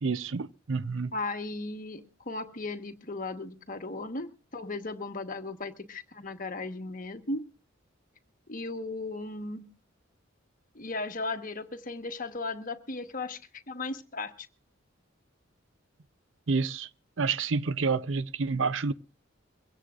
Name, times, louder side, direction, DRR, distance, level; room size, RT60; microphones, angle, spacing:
voice 1, 0.0-1.1 16.5-16.9 17.2-18.9, right 4 dB, 75° right, 0.6 m, -29 dB
voice 2, 1.1-7.4 8.5-9.7 10.7-13.4 13.7-14.5, left 3 dB, 45° left, 1.2 m, -36 dB
23.5 x 16.5 x 2.4 m
head